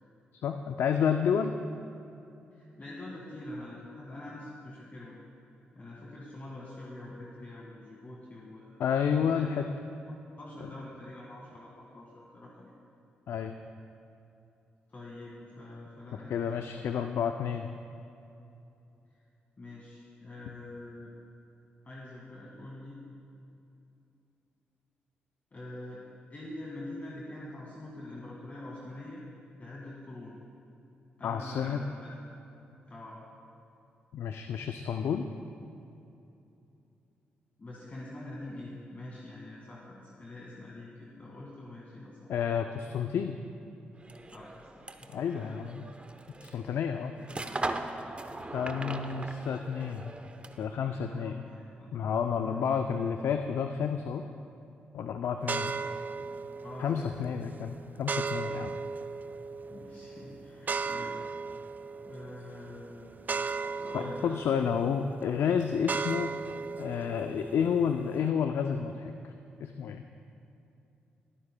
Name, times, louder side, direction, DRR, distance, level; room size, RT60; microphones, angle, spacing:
voice 1, 0.4-1.5 8.8-9.6 10.6-10.7 13.3-13.5 16.3-17.7 31.2-31.8 34.1-35.3 42.3-43.4 45.1-45.8 46.4-47.1 48.5-50.1 50.6-51.4 51.9-54.3 54.9-55.7 56.8-58.7 63.9-66.3 66.8-69.3 69.6-70.0, left 7 dB, 70° left, 7 dB, 0.4 m, -30 dB
voice 2, 2.5-5.2 5.8-8.7 9.2-9.6 10.1-12.7 14.9-17.0 19.6-21.1 21.8-23.0 25.5-26.0 26.3-29.2 29.6-30.4 31.2-32.2 32.9-33.2 37.6-42.3 44.3-45.6 47.2-47.6 48.3-49.2 50.8-51.9 52.4-52.7 56.6-57.1 59.7-61.2 62.1-63.2 63.8-64.3 67.5-67.7, left 1 dB, 40° left, -5 dB, 1.8 m, -45 dB
sound 1, 44.0-50.8, right 2 dB, 25° right, 0.8 m, -40 dB
sound 2, 55.4-68.3, right 4 dB, 40° right, 0.4 m, -37 dB
21.0 x 9.7 x 2.2 m, 2.7 s
supercardioid pair, 45°, 4 cm